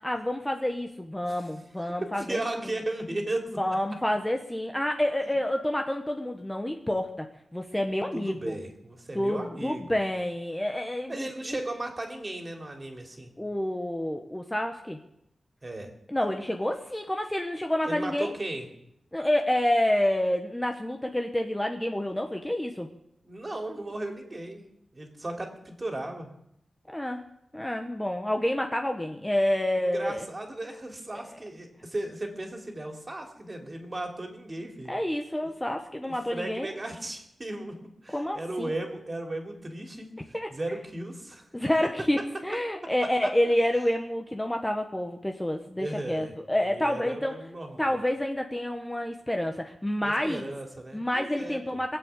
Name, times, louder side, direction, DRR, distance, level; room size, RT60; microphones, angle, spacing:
voice 1, 0.0-2.4 3.6-7.3 7.5-8.6 9.1-11.6 13.4-15.0 16.1-18.3 19.1-22.9 26.9-27.2 27.5-30.3 34.9-36.7 38.1-38.7 40.3-40.5 41.5-47.4 47.8-50.4 50.9-52.0, left 1 dB, 10° left, 4 dB, 1.1 m, -28 dB
voice 2, 1.9-3.6 5.2-5.3 8.1-9.9 11.1-13.3 15.6-15.9 17.9-18.7 23.2-24.6 24.9-26.3 29.8-34.9 35.4-35.5 36.0-41.5 43.2-43.3 45.8-46.3 46.6-48.0 50.0-51.8, right 1 dB, 30° right, 3 dB, 3.0 m, -36 dB
21.5 x 7.6 x 8.3 m, 0.78 s
wide cardioid pair, 95°, 0 cm